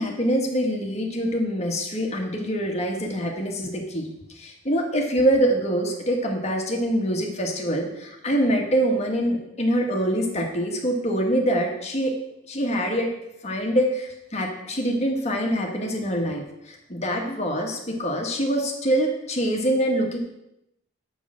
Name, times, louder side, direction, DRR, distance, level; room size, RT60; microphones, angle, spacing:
voice 1, 0.0-4.1 4.3-12.2 12.5-13.1 13.4-20.2, equal, 35° left, 1 dB, 1.6 m, -25 dB
6.9 x 6.2 x 7.5 m, 0.84 s
head